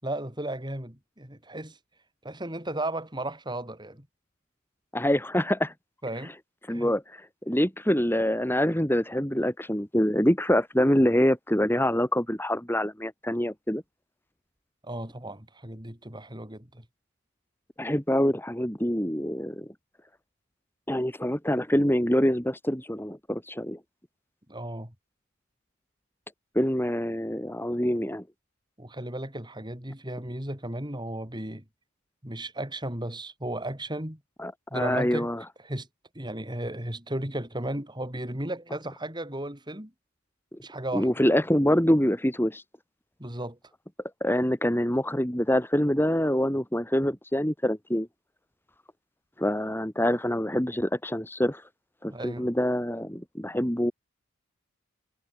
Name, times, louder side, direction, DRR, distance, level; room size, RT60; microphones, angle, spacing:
voice 1, 0.0-1.8 2.2-4.1 6.0-6.3 6.7-6.9 14.8-16.8 24.5-24.9 28.8-31.6 32.2-34.2 34.7-35.3 35.6-35.9 36.1-39.9 40.6-41.1 43.2-43.6 52.0-52.5, right 1 dB, 20° right, 4.4 m, -35 dB
voice 2, 4.9-5.7 6.7-13.8 17.8-19.7 20.9-23.8 26.5-28.2 34.4-35.4 40.5-40.6 40.9-42.6 44.2-48.1 49.4-51.6 52.0-53.9, equal, 10° left, 3.2 m, -25 dB
head